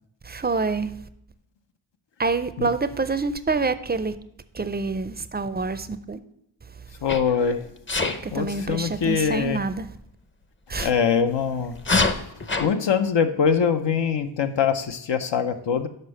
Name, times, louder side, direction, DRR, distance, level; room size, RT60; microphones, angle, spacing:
voice 1, 0.2-1.0 2.2-4.2 4.5-6.2 8.2-10.0 10.7-10.9, right 4 dB, 25° right, 0.4 m, -27 dB
voice 2, 7.0-7.6 8.3-9.6 10.8-11.8 12.6-15.9, left 7 dB, 75° left, 0.7 m, -23 dB
Sneeze, 7.1-7.4 7.9-8.2 10.7-10.9 11.8-12.7, left 3 dB, 25° left, 0.6 m, -24 dB
6.6 x 5.2 x 6.3 m
wide cardioid pair, 105°, 43 cm